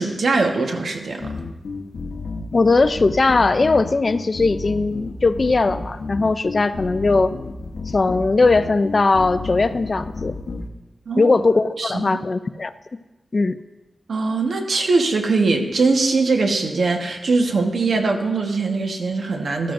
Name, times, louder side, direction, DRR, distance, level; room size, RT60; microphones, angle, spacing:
voice 1, 0.0-1.4 11.1-11.4 11.8-12.0 14.1-19.7, right 3 dB, 75° right, 3 dB, 1.2 m, -21 dB
sound 1, 1.2-10.7, left 3 dB, 75° left, 1.0 m, -31 dB
voice 2, 2.5-7.3 7.9-10.3 11.2-12.7 13.3-13.6, left 3 dB, 40° left, 12 dB, 0.4 m, -19 dB
14.0 x 13.0 x 2.6 m, 1.1 s
wide cardioid pair, 130°, 0 cm